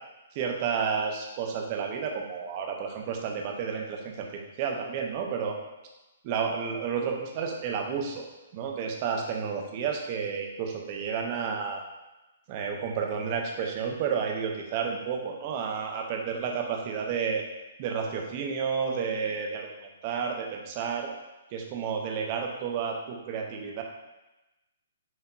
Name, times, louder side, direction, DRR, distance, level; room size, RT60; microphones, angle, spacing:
voice 1, 0.3-5.6 6.2-8.2 8.5-11.8 12.5-17.4 17.8-19.7 20.0-21.1 21.5-23.8, right 6 dB, 35° right, 2 dB, 0.5 m, -31 dB
5.7 x 2.7 x 2.3 m, 1.0 s
hypercardioid pair, 160°, 0 cm